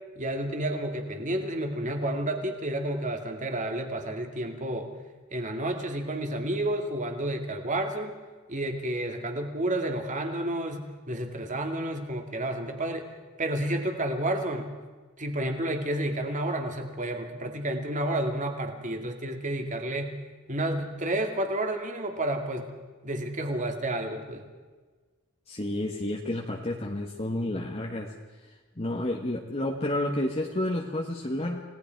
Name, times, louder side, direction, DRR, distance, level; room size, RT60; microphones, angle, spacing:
voice 1, 0.2-4.9 5.3-8.2 8.5-13.1 13.4-14.7 15.2-20.2 20.5-22.7 23.0-24.4, right 1 dB, 35° right, 4 dB, 2.5 m, -30 dB
voice 2, 25.5-28.1 28.4-31.6, left 1 dB, 25° left, 0 dB, 1.5 m, -30 dB
29.5 x 18.5 x 4.7 m, 1.4 s
head